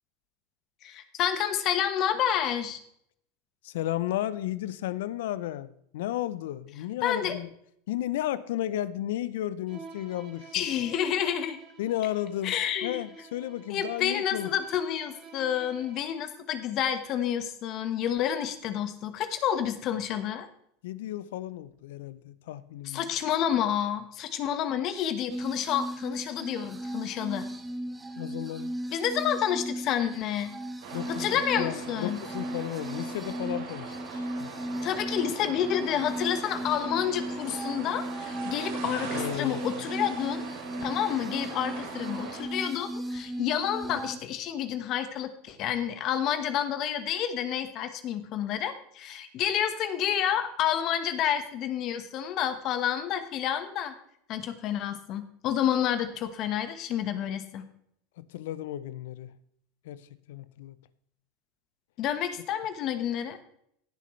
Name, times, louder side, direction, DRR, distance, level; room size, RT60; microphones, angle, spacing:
voice 1, 0.8-2.8 7.0-7.4 10.5-11.6 12.4-13.0 13.7-20.5 22.8-27.5 28.9-30.5 31.1-32.2 34.8-40.5 40.8-53.9 54.3-57.6 62.0-63.4, left 9 dB, 50° left, 10 dB, 1.3 m, -29 dB
voice 2, 3.6-7.5 7.9-10.5 11.8-14.5 20.8-23.0 28.2-28.7 30.9-34.5 39.1-39.6 58.2-59.3 59.8-60.8, left 13 dB, 75° left, 17 dB, 0.6 m, -34 dB
Bowed string instrument, 9.7-16.3, right 5 dB, 45° right, 2.5 m, -51 dB
sound 1, 25.3-44.2, right 1 dB, 15° right, 1.4 m, -37 dB
sound 2, 30.8-42.4, right 5 dB, 70° right, 3.5 m, -41 dB
17.0 x 6.8 x 3.2 m, 0.70 s
hypercardioid pair, 95°, 0 cm